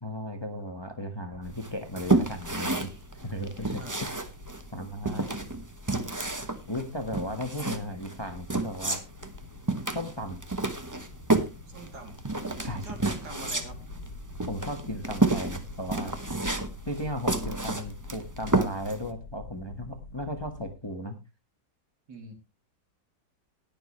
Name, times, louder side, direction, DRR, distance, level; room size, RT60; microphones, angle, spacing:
voice 1, 0.0-3.8 4.7-5.5 6.7-9.0 9.9-10.4 12.6-12.9 14.5-16.2 16.9-21.2, equal, 15° left, 6 dB, 1.3 m, -36 dB
sound 1, 1.3-20.7, left 3 dB, 55° left, 1.7 m, -45 dB
sound 2, 1.6-19.1, right 2 dB, 15° right, 0.8 m, -30 dB
voice 2, 11.7-12.2 12.8-13.8 22.1-22.3, right 3 dB, 65° right, 5 dB, 3.0 m, -44 dB
19.5 x 6.9 x 3.1 m, 0.25 s
omnidirectional pair, 1.9 m